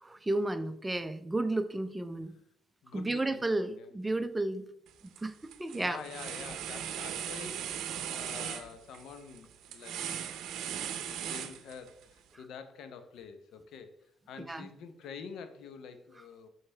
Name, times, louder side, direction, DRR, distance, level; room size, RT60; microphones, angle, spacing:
voice 1, 0.0-2.3 2.9-4.6 5.2-5.3 5.6-6.0 14.4-14.7, right 2 dB, 15° right, 10 dB, 0.5 m, -32 dB
voice 2, 2.8-3.9 5.7-10.4 11.0-14.0 14.3-16.5, left 6 dB, 80° left, 9 dB, 0.7 m, -47 dB
sound 1, 4.9-5.2 5.5-12.0, right 9 dB, 85° right, 0.6 m, -38 dB
5.6 x 5.4 x 3.3 m, 0.73 s
cardioid pair, 90°, 0 cm